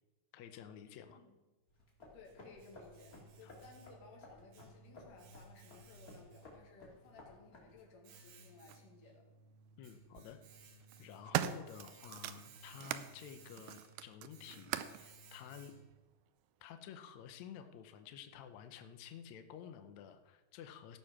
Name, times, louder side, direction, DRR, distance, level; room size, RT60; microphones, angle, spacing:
voice 1, 0.3-1.2 3.4-3.5 9.8-10.4 11.0-15.7 16.6-21.0, left 8 dB, 90° left, 8 dB, 1.5 m, -52 dB
sound 1, 1.7-7.9, left 2 dB, 30° left, 2.0 m, -58 dB
Domestic sounds home sounds, 1.7-16.1, right 3 dB, 65° right, 2.7 m, -60 dB
voice 2, 2.1-9.3, left 4 dB, 65° left, 1 dB, 3.2 m, -59 dB
sound 2, 8.7-8.8 9.9-10.3 10.8-13.1 13.5-15.0 15.9-16.0, right 13 dB, 85° right, 1.9 m, -40 dB
16.0 x 6.7 x 5.9 m, 1.1 s
omnidirectional pair, 4.4 m